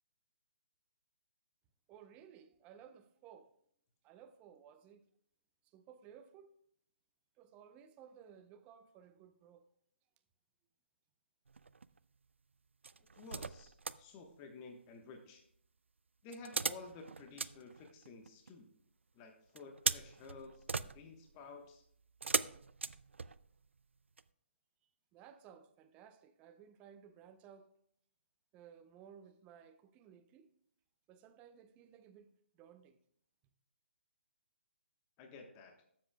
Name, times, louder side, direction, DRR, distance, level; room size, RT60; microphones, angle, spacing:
voice 1, 1.9-3.6 4.0-5.0 5.6-6.5 7.4-9.7 25.1-27.8 28.5-30.5 31.1-32.3 32.6-33.0, right 8 dB, 20° right, 0.6 m, -58 dB
sound 1, 11.5-12.0 12.8-14.0 16.3-18.5 19.6-23.7 24.2-24.3, right 4 dB, 85° right, 0.3 m, -40 dB
voice 2, 13.1-15.4 16.2-18.7 19.1-21.8 35.2-35.7, left 4 dB, 25° left, 1.1 m, -53 dB
15.0 x 7.5 x 2.2 m
figure-of-eight pair, 140°, 6 cm